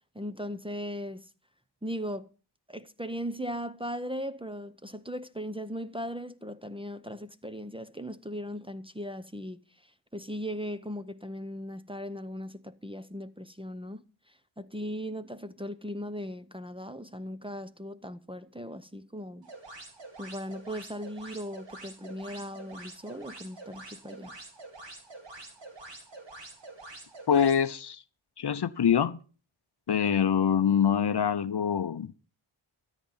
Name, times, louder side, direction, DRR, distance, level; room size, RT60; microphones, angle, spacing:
voice 1, 0.1-1.3 1.8-2.3 2.7-9.6 10.1-14.0 14.6-19.5 20.2-24.3, equal, 10° right, 0.7 m, -38 dB
sound 1, 19.4-27.6, right 2 dB, 60° right, 2.9 m, -46 dB
voice 2, 27.3-28.0 28.4-29.2 29.9-32.2, left 8 dB, 55° left, 0.7 m, -25 dB
13.5 x 9.1 x 5.5 m
cardioid pair, 55°, 49 cm